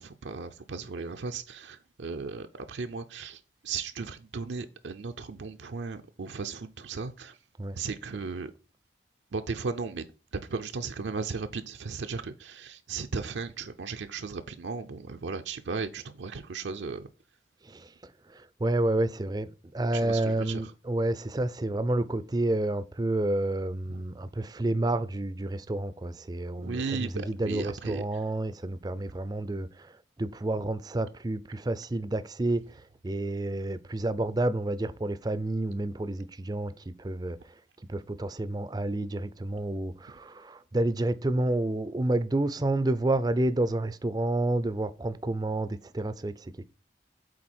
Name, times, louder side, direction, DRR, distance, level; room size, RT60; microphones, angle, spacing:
voice 1, 0.0-7.4 7.7-8.5 9.3-10.1 10.3-17.1 19.9-20.7 23.9-24.0 26.6-28.0, right 4 dB, 75° right, 0.5 m, -36 dB
voice 2, 17.6-37.6 37.9-46.6, right 2 dB, 20° right, 0.4 m, -30 dB
7.6 x 4.2 x 4.3 m
head